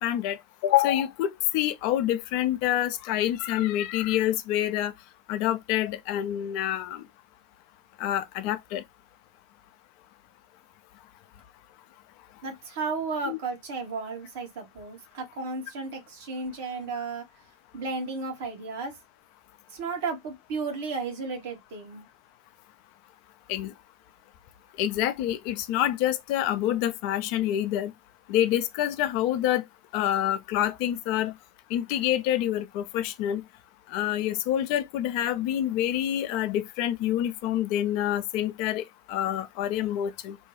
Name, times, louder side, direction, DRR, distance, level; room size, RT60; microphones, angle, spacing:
voice 1, 0.0-4.9 5.3-7.0 8.0-8.8 13.2-13.4 23.5-23.7 24.8-27.9 28.3-29.6 29.9-31.3 31.7-33.4 33.9-38.8 39.1-40.4, left 12 dB, 50° left, 0.4 m, -27 dB
voice 2, 12.4-17.2 17.7-18.9 19.7-22.0, right 4 dB, 55° right, 1.1 m, -33 dB
2.6 x 2.2 x 3.1 m
figure-of-eight pair, 90°, 0 cm